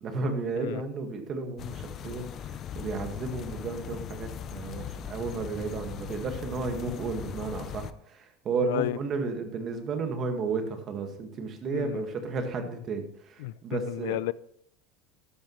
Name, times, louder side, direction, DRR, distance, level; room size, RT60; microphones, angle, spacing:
voice 1, 0.0-14.2, right 4 dB, 30° right, 1.6 m, -33 dB
sound 1, 1.6-7.9, left 9 dB, 30° left, 0.5 m, -39 dB
voice 2, 8.7-9.0 11.7-12.0 13.4-14.3, left 17 dB, 90° left, 0.4 m, -32 dB
12.5 x 10.0 x 3.1 m
cardioid pair, 165°, 0 cm